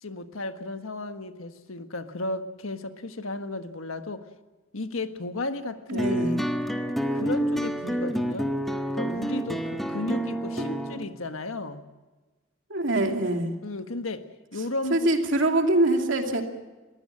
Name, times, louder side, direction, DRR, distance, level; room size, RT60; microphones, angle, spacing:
voice 1, 0.0-4.3 4.7-6.4 7.1-8.6 8.9-11.8 13.6-14.3 14.5-15.1, left 2 dB, 90° left, 8 dB, 1.5 m, -34 dB
voice 2, 5.9-6.4 10.6-10.7 12.7-13.5 14.9-16.4, right 1 dB, 65° right, 3 dB, 2.7 m, -24 dB
sound 1, 6.0-11.0, equal, ahead, 1.3 m, -28 dB
21.5 x 15.5 x 8.6 m, 1.2 s
head